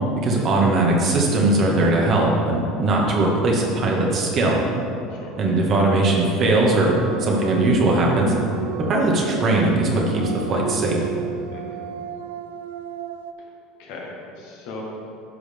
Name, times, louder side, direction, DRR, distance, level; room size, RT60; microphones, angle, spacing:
voice 1, 0.2-4.6 5.4-6.9 7.2-8.3 8.9-11.1, right 2 dB, 45° right, -1 dB, 2.0 m, -19 dB
sound 1, 6.7-13.3, right 9 dB, 80° right, 0.4 m, -34 dB
voice 2, 11.5-11.8 13.8-14.8, left 2 dB, 70° left, -2 dB, 1.9 m, -38 dB
12.5 x 5.0 x 3.8 m, 2.7 s
hypercardioid pair, 75°, 0 cm